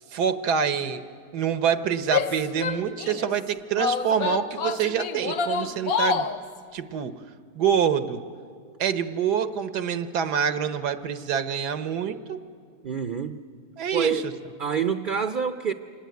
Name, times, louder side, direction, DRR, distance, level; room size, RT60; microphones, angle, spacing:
voice 1, 0.1-1.0 1.3-6.3 6.7-7.1 7.5-8.2 8.8-12.4 13.8-14.2, right 7 dB, 85° right, 12 dB, 1.5 m, -26 dB
Female speech woman speaking / Yell, 2.0-3.3 3.8-6.4, left 6 dB, 65° left, 1.3 m, -27 dB
voice 2, 12.8-13.4 13.9-14.3 14.6-15.7, right 6 dB, 50° right, 9 dB, 0.6 m, -26 dB
25.5 x 18.5 x 9.3 m, 2.1 s
omnidirectional pair, 1.7 m